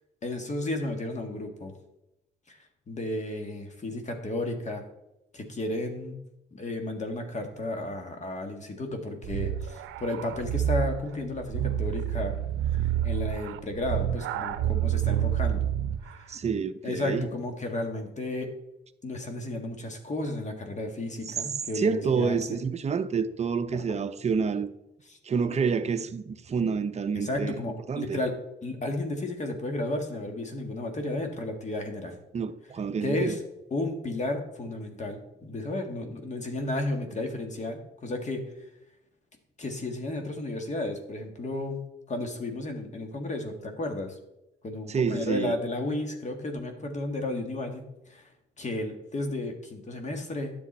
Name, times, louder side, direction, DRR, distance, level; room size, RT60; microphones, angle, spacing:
voice 1, 0.2-1.7 2.5-2.6 2.9-4.8 5.3-6.2 6.5-12.3 12.6-15.7 16.0-16.4 16.8-18.5 19.0-22.6 23.9-24.0 25.1-25.2 27.1-28.4 28.6-32.2 33.0-33.4 33.7-38.4 39.6-41.8 42.1-44.2 44.6-48.3 48.6-50.5, left 2 dB, 35° left, 1.6 m, -33 dB
sound 1, 9.2-16.1, right 11 dB, 80° right, 0.6 m, -28 dB
voice 2, 16.3-17.3 21.8-24.7 25.2-27.5 27.9-28.2 32.3-33.4 44.9-45.5, right 5 dB, 35° right, 0.6 m, -28 dB
10.0 x 6.9 x 4.2 m
cardioid pair, 90°, 20 cm